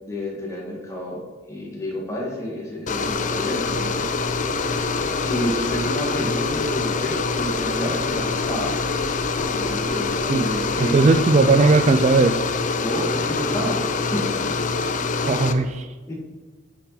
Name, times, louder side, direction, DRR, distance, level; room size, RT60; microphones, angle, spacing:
voice 1, 0.1-1.2 1.5-4.1 5.2-8.7 9.5-11.4 12.8-14.8 16.1-16.2, equal, 15° left, -3 dB, 2.2 m, -30 dB
sound 1, 2.9-15.5, left 4 dB, 40° left, 0.5 m, -25 dB
Bird, 3.5-11.1, equal, 70° right, 3.0 m, -43 dB
voice 2, 10.8-12.4 15.2-15.9, right 3 dB, 35° right, 9 dB, 0.3 m, -17 dB
9.9 x 5.9 x 4.2 m, 1.4 s
head